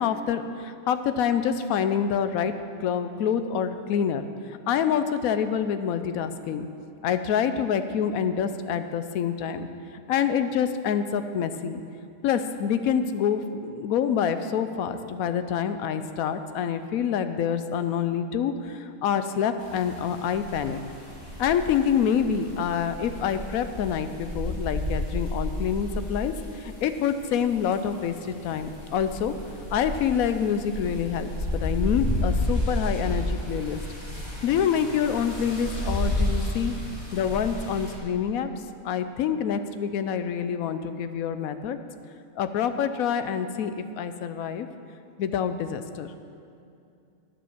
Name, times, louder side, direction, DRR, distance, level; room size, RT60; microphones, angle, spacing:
voice 1, 0.0-2.5 2.8-6.7 7.0-9.7 9.9-11.8 12.2-20.8 21.4-29.3 29.7-33.8 34.4-36.7 37.1-38.5 38.8-41.8 42.4-44.7 45.2-46.1, left 8 dB, 80° left, 10 dB, 1.1 m, -26 dB
sound 1, 19.6-38.0, left 1 dB, 30° left, 2.0 m, -32 dB
10.5 x 6.9 x 7.2 m, 2.6 s
omnidirectional pair, 1.5 m